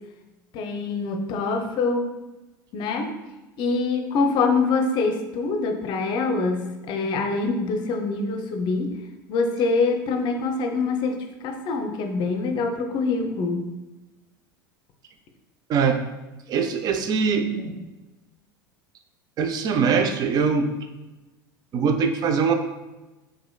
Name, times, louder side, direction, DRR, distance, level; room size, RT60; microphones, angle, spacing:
voice 1, 0.5-2.1 2.7-3.1 3.6-8.9 9.3-11.2 11.4-13.6, left 4 dB, 45° left, 6 dB, 0.6 m, -24 dB
voice 2, 15.7-16.0 16.5-17.8 19.4-20.7 21.7-22.5, right 5 dB, 35° right, 6 dB, 0.5 m, -22 dB
4.8 x 3.7 x 2.3 m, 1.1 s
figure-of-eight pair, 80°, 12 cm